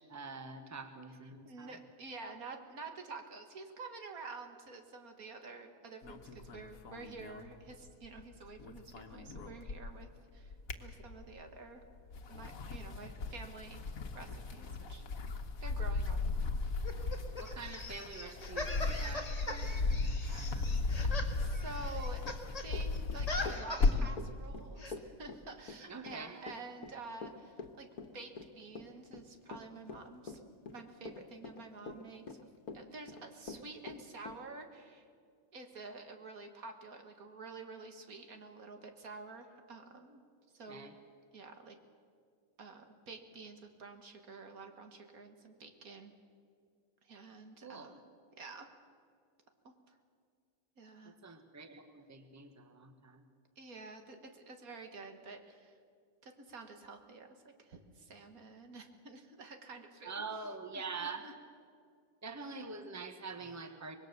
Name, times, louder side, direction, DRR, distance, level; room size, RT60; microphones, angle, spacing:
voice 1, 0.0-1.7 17.4-20.7 25.9-26.4 40.7-40.9 47.6-48.0 51.0-53.2 60.0-61.3 62.2-64.0, right 4 dB, 10° right, 7 dB, 1.3 m, -45 dB
voice 2, 1.4-10.5 10.8-11.8 12.3-13.8 14.1-15.1 15.6-16.7 21.4-22.3 22.6-30.4 30.7-32.5 32.7-35.1 35.5-40.2 40.5-40.9 41.3-41.8 42.6-46.1 47.0-47.9 48.3-48.7 49.6-50.0 50.8-51.2 53.6-55.8 56.2-60.2 60.7-61.3, right 3 dB, 75° right, 6 dB, 2.1 m, -49 dB
sound 1, 6.0-8.2 8.5-10.1 10.4-11.5 12.0-24.2, left 3 dB, 70° left, 1.7 m, -36 dB
sound 2, 16.8-22.7 22.9-24.1 24.8-24.9, left 2 dB, 25° left, 1.9 m, -42 dB
Run / Walk footsteps, 22.7-34.4, left 4 dB, 85° left, 1.8 m, -46 dB
24.5 x 20.5 x 6.8 m, 2.2 s
omnidirectional pair, 1.5 m